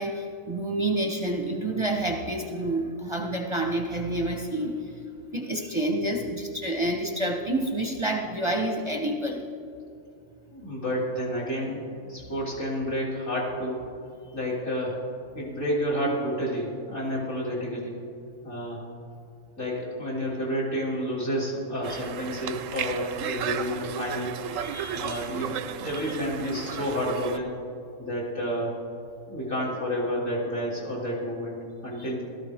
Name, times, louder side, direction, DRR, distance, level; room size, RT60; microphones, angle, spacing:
voice 1, 0.0-5.0 5.3-9.4 21.9-22.0 24.6-25.2 25.9-26.1 32.0-32.1, right 1 dB, 25° right, 2 dB, 0.7 m, -29 dB
voice 2, 10.5-13.8 14.3-15.0 15.3-18.0 18.4-18.8 19.6-24.3 24.9-27.5 28.0-28.7 29.3-31.6 31.8-32.2, equal, 50° left, -6 dB, 3.4 m, -30 dB
Conversation, 21.8-27.4, right 9 dB, 70° right, 0.9 m, -34 dB
16.5 x 13.5 x 3.5 m, 2.5 s
omnidirectional pair, 1.5 m